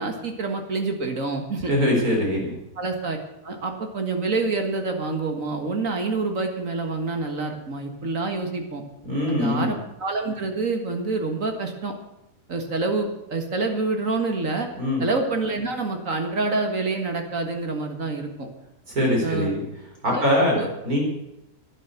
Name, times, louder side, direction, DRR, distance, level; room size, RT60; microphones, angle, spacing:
voice 1, 0.0-1.7 2.8-3.2 3.4-8.8 9.3-11.9 12.5-14.7 15.0-18.5 19.2-19.5 20.1-20.2 20.5-20.7, right 3 dB, 60° right, 4 dB, 2.1 m, -27 dB
voice 2, 1.7-2.5 9.0-9.7 14.7-15.0 18.9-19.6 20.0-20.5 20.8-21.0, left 1 dB, 80° right, 0 dB, 4.9 m, -22 dB
12.0 x 10.5 x 8.0 m, 0.90 s
omnidirectional pair, 1.5 m